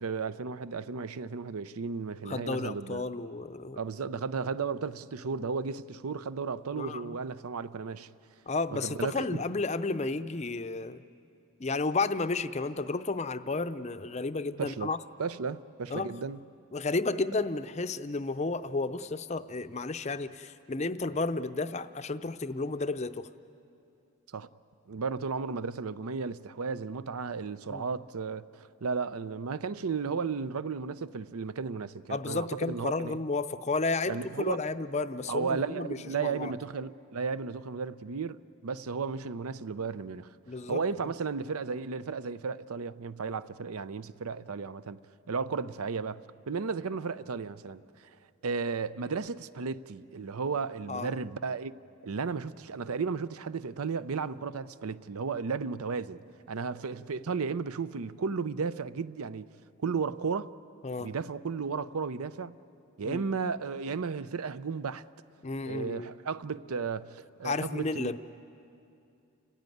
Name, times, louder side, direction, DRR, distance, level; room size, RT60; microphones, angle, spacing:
voice 1, 0.0-3.0 3.7-8.1 8.7-9.6 14.6-14.9 15.2-16.4 24.3-24.5 24.9-33.2 34.1-34.6 35.3-40.3 40.7-45.0 45.3-46.2 46.5-47.8 48.4-51.7 52.0-56.2 56.5-59.5 59.8-60.5 61.0-62.6 63.0-65.0 65.6-68.1, right 5 dB, 80° right, 0.6 m, -34 dB
voice 2, 2.3-3.8 6.7-7.2 8.5-11.0 11.6-15.0 15.9-16.1 16.7-23.3 27.7-27.8 32.1-36.5 40.5-40.8 50.9-51.1 60.8-61.1 63.0-63.2 65.4-66.1 67.4-68.2, left 3 dB, 30° left, 0.5 m, -32 dB
30.0 x 15.0 x 9.2 m
head